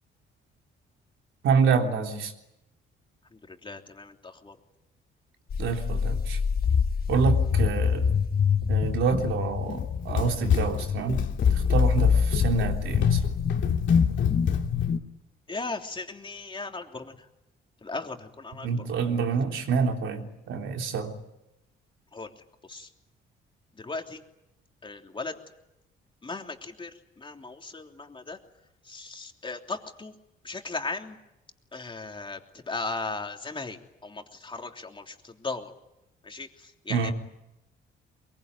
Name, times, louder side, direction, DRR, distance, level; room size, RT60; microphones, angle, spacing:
voice 1, 1.4-2.3 5.6-6.4 7.1-8.2 8.7-11.2 11.5-13.2 18.6-21.1 36.9-37.1, right 5 dB, 80° right, 3 dB, 3.5 m, -27 dB
voice 2, 3.3-4.5 15.5-17.3 17.8-19.0 22.1-22.9 23.7-24.2 24.8-25.4 26.2-28.4 28.8-30.1 30.4-31.2 31.7-32.4 32.6-35.7 36.2-37.1, left 3 dB, 25° left, 3 dB, 3.2 m, -37 dB
Sci-fi Low Weird, 5.5-15.0, left 6 dB, 50° left, 1.6 m, -25 dB
Run, 9.7-14.9, left 8 dB, 70° left, 2.4 m, -28 dB
23.0 x 22.5 x 9.7 m, 0.90 s
cardioid pair, 90°, 20 cm